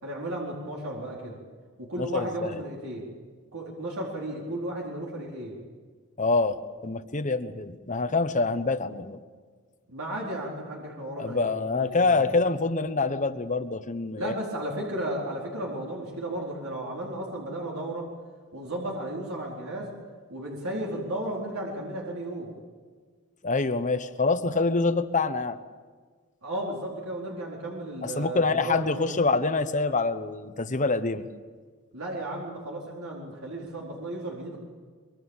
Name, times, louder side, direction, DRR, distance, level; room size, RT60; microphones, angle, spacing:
voice 1, 0.0-1.4 1.8-3.0 3.5-5.6 9.9-12.3 14.2-18.1 18.5-19.9 20.3-22.5 26.4-29.1 31.9-34.6, right 1 dB, 75° right, -3 dB, 4.3 m, -34 dB
voice 2, 2.0-2.6 6.2-9.2 11.2-14.3 23.4-25.6 28.0-31.3, left 3 dB, 35° left, 10 dB, 1.1 m, -26 dB
24.0 x 23.5 x 7.3 m, 1.5 s
head